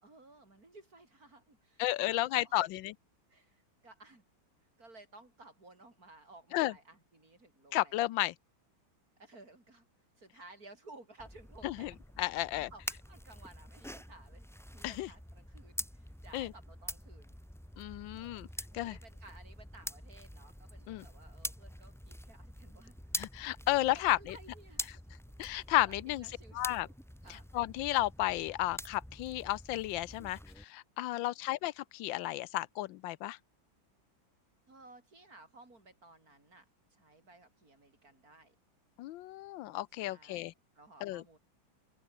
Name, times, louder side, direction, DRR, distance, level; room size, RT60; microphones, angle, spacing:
voice 1, 0.0-2.7 3.3-4.2 4.8-8.1 9.2-9.9 10.2-12.0 12.4-17.4 18.1-18.4 18.7-23.0 23.4-25.0 25.4-27.0 27.2-27.5 31.1-31.5 34.7-36.7 36.9-38.5 40.0-41.4, right 2 dB, 45° right, 6.5 m, -57 dB
voice 2, 1.8-2.9 6.5-6.7 7.7-8.3 11.6-11.9 12.2-12.7 14.8-15.1 16.3-16.5 17.8-18.5 18.7-19.0 20.9-21.0 23.2-24.4 25.4-26.2 26.5-26.9 27.5-30.4 30.7-33.4 39.0-40.5 41.0-41.2, left 16 dB, 85° left, 1.4 m, -33 dB
sound 1, 11.2-30.6, equal, ahead, 0.9 m, -46 dB
open air
omnidirectional pair, 2.1 m